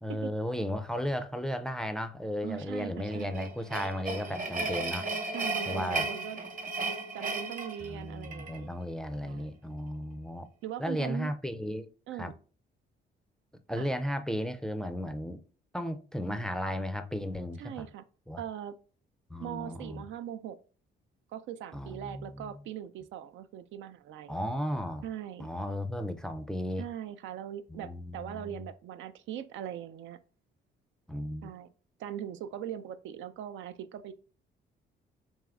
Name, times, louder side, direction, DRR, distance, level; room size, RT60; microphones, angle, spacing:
voice 1, 0.0-5.1 5.7-6.1 7.8-10.5 10.8-11.9 12.2-12.3 13.7-15.4 15.7-17.9 18.3-18.4 19.3-20.0 21.7-22.5 24.3-25.0 25.4-26.8 27.7-28.6 31.1-31.5, equal, 5° left, 0.4 m, -35 dB
voice 2, 2.4-3.4 4.1-4.5 5.3-6.4 7.1-8.7 9.2-9.6 10.6-11.3 12.1-12.3 13.8-13.9 17.6-18.0 18.4-18.7 19.4-20.6 21.3-24.4 25.0-25.5 26.8-30.2 31.4-31.7 32.0-34.1, right 10 dB, 75° right, 0.4 m, -40 dB
sound 1, 3.1-8.6, right 3 dB, 40° right, 1.0 m, -35 dB
3.6 x 3.1 x 3.5 m
cardioid pair, 90°, 20 cm